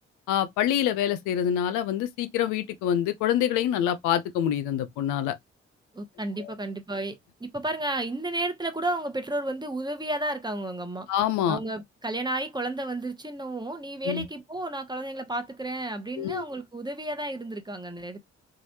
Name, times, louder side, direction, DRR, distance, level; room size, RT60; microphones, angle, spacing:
voice 1, 0.3-5.3 6.4-6.5 11.1-11.6 14.1-14.2 16.2-16.4, left 10 dB, 80° left, 0.5 m, -26 dB
voice 2, 5.9-11.1 11.5-18.2, right 1 dB, 15° right, 0.9 m, -32 dB
3.0 x 2.4 x 2.7 m
hypercardioid pair, 45°, 31 cm